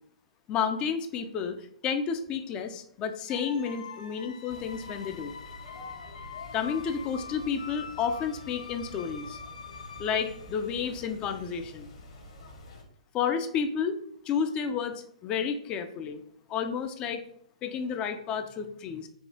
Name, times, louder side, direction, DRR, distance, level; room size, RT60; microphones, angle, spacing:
voice 1, 0.5-5.3 6.5-9.4 10.0-11.9 13.1-14.0 14.3-16.2 16.5-17.2 17.6-19.1, left 7 dB, 25° left, 8 dB, 0.4 m, -31 dB
sound 1, 3.3-11.2, left 6 dB, 70° left, 0.6 m, -45 dB
sound 2, 4.5-12.8, left 1 dB, 55° left, 1.1 m, -48 dB
4.4 x 2.4 x 3.4 m, 0.65 s
figure-of-eight pair, 120°, 4 cm